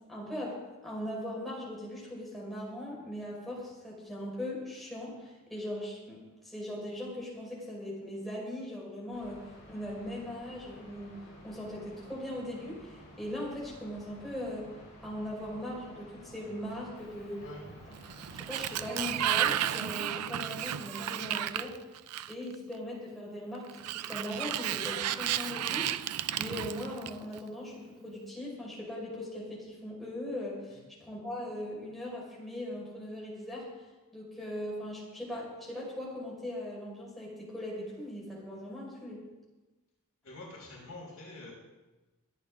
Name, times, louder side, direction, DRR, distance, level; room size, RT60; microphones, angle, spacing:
voice 1, 0.1-6.2 6.4-9.4 9.7-11.2 11.4-14.7 15.0-17.4 18.3-21.8 22.3-25.9 26.3-33.7 34.1-39.2, left 1 dB, ahead, -5 dB, 4.9 m, -39 dB
sound 1, 9.1-19.3, equal, 50° left, 5.6 m, -53 dB
voice 2, 17.4-17.8 30.7-31.1 40.2-41.5, left 2 dB, 65° left, -5 dB, 5.8 m, -47 dB
Sliding door, 17.9-22.5 23.7-27.4, right 11 dB, 90° right, 0.5 m, -33 dB
24.5 x 8.9 x 3.7 m, 1.2 s
head